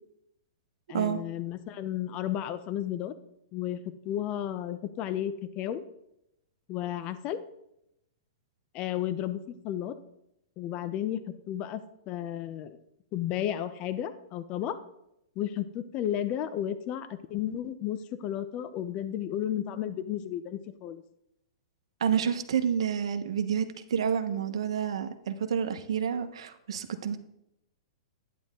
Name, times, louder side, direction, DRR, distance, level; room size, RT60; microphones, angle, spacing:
voice 1, 0.9-3.1 3.5-5.8 6.7-7.4 8.7-9.9 10.6-11.2 11.5-11.8 12.1-12.8 13.1-14.7 15.4-21.0, left 11 dB, 35° left, 12 dB, 0.7 m, -33 dB
voice 2, 22.0-27.2, right 8 dB, 75° right, 8 dB, 1.1 m, -29 dB
11.0 x 9.5 x 3.7 m, 0.81 s
hypercardioid pair, 135°, 3 cm